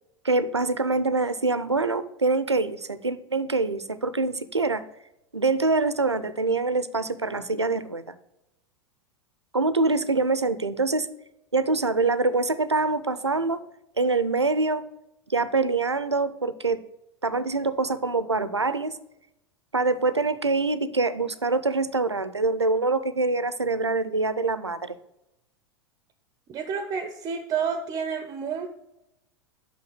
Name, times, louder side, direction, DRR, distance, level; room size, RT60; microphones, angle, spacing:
voice 1, 0.2-4.8 5.3-8.0 9.5-11.1 11.5-13.6 14.0-14.8 15.3-16.8 17.2-18.9 19.7-25.0, right 3 dB, 85° right, 15 dB, 0.5 m, -25 dB
voice 2, 26.5-28.7, right 6 dB, 25° right, 8 dB, 0.6 m, -29 dB
5.8 x 5.8 x 6.2 m, 0.87 s
figure-of-eight pair, 85°, 14 cm